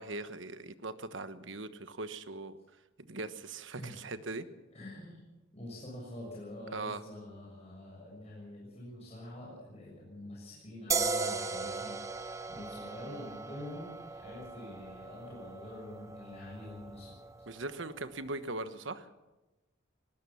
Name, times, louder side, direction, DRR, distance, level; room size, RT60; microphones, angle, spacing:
voice 1, 0.0-2.6 3.0-4.5 6.7-7.0 13.0-13.3 17.5-19.1, right 2 dB, 70° right, 11 dB, 1.3 m, -40 dB
voice 2, 4.7-5.2 5.5-17.1, left 1 dB, 35° left, -4 dB, 6.8 m, -46 dB
sound 1, 10.9-18.2, right 4 dB, 15° right, 0.9 m, -38 dB
19.5 x 19.5 x 7.2 m, 1.1 s
head